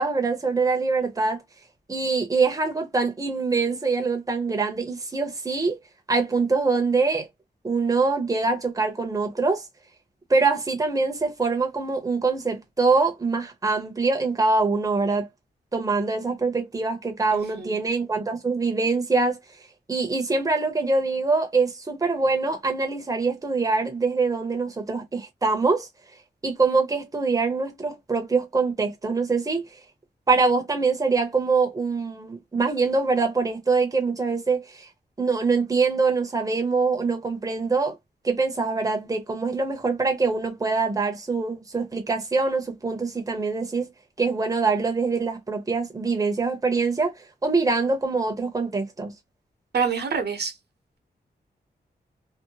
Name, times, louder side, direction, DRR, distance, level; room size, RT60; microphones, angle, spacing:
voice 1, 0.0-1.4 1.9-5.8 6.1-7.3 7.6-9.7 10.3-15.3 15.7-19.4 19.9-25.9 26.4-29.6 30.3-34.9 35.2-38.0 38.2-43.9 44.2-49.1, right 4 dB, 20° right, 0.7 m, -24 dB
voice 2, 17.3-17.8 49.7-50.5, right 6 dB, 70° right, 0.8 m, -27 dB
2.6 x 2.0 x 2.8 m
wide cardioid pair, 145°, 18 cm